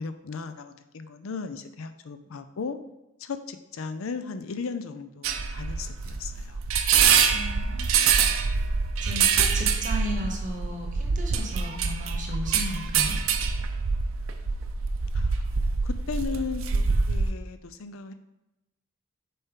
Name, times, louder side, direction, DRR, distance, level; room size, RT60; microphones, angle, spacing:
voice 1, 0.0-2.8 3.2-6.6 7.1-7.3 15.1-15.4 15.8-18.1, left 5 dB, 85° left, 10 dB, 0.5 m, -36 dB
sound 1, 5.2-17.3, right 6 dB, 85° right, 0.5 m, -25 dB
voice 2, 7.3-8.3 9.0-13.2, equal, 40° right, 2 dB, 0.9 m, -35 dB
6.8 x 4.3 x 3.7 m, 0.96 s
head